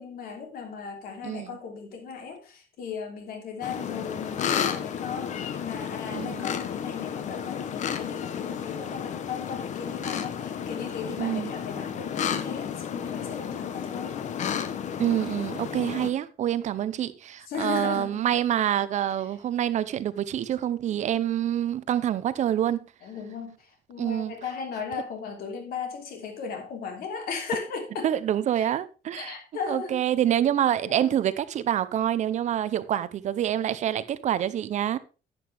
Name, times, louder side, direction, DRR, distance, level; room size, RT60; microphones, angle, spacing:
voice 1, 0.0-14.2 17.5-18.3 23.0-28.1 28.5-28.7 29.1-30.0 30.8-31.1, left 6 dB, 70° left, 3.1 m, -36 dB
sound 1, 3.6-16.1, left 8 dB, 50° left, 1.0 m, -32 dB
voice 2, 6.1-6.5 11.2-11.5 15.0-22.8 24.0-24.3 28.0-29.3 29.7-35.0, right 11 dB, 50° right, 0.7 m, -26 dB
11.0 x 8.5 x 3.4 m
cardioid pair, 175°, 16 cm